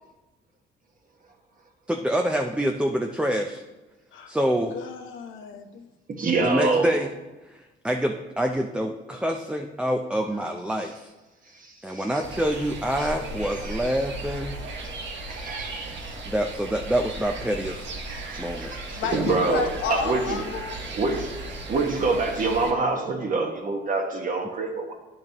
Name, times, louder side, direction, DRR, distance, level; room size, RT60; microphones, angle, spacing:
voice 1, 1.9-3.6 4.3-4.8 6.4-7.1 7.5-11.1 11.8-14.6 16.3-17.9 18.4-18.7 19.0-19.2, equal, 5° right, 4 dB, 0.5 m, -26 dB
voice 2, 4.7-5.9 19.0-20.8, left 6 dB, 80° left, 4 dB, 0.9 m, -32 dB
voice 3, 6.1-6.9 11.6-12.1 13.0-13.1 13.4-13.8 14.6-15.0 15.3-16.2 18.1-20.4 20.9-21.3 21.7-24.9, right 3 dB, 45° right, 2 dB, 1.5 m, -26 dB
sound 1, 12.2-22.7, right 2 dB, 65° right, 1.3 m, -36 dB
10.5 x 6.5 x 3.0 m, 1.1 s
cardioid pair, 90°, 20 cm